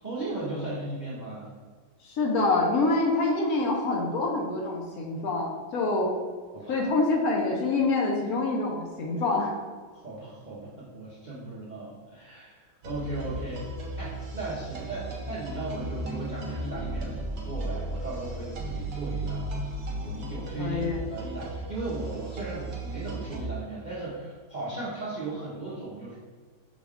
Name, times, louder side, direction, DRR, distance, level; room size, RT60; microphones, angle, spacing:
voice 1, 0.0-1.5 6.5-6.8 9.9-13.7 14.0-19.6 20.0-20.8 21.1-26.2, right 2 dB, 50° right, -7 dB, 0.5 m, -37 dB
voice 2, 2.0-6.1 6.7-9.5 20.6-21.0, left 3 dB, 65° left, -1 dB, 1.0 m, -26 dB
sound 1, 12.8-23.4, right 2 dB, 65° right, 1.2 m, -35 dB
6.1 x 2.3 x 3.5 m, 1.5 s
omnidirectional pair, 1.9 m